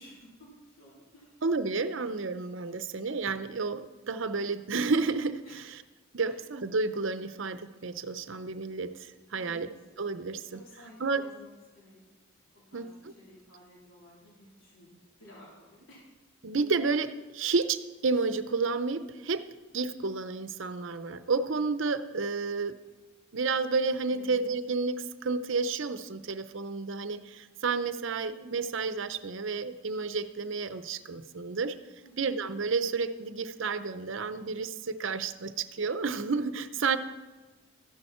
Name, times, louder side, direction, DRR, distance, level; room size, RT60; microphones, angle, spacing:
voice 1, 0.0-1.4 5.4-5.6 6.3-6.4 9.4-9.6 10.5-11.5 11.7-12.0 12.5-16.0 24.1-24.3 32.0-32.3, equal, 70° left, -5 dB, 3.8 m, -54 dB
voice 2, 1.4-5.6 6.1-9.7 10.0-10.6 11.0-11.2 12.7-13.1 16.4-19.4 19.7-22.8 23.3-31.8 32.2-37.0, right 4 dB, 60° right, 11 dB, 0.6 m, -31 dB
13.5 x 11.0 x 4.4 m, 1.2 s
head